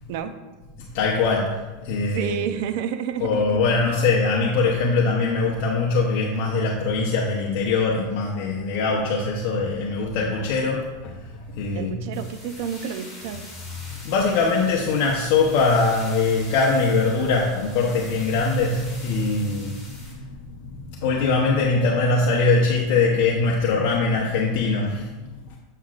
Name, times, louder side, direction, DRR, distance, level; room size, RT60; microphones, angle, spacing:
voice 1, 0.8-1.5 1.8-2.5 3.2-12.2 13.7-25.6, left 3 dB, 55° left, -2 dB, 0.9 m, -22 dB
voice 2, 2.1-3.6 11.7-13.5, right 8 dB, 55° right, 8 dB, 0.6 m, -30 dB
sound 1, 12.1-20.1, left 2 dB, 10° left, 2.2 m, -44 dB
7.9 x 7.4 x 2.5 m, 1.2 s
supercardioid pair, 155°, 0 cm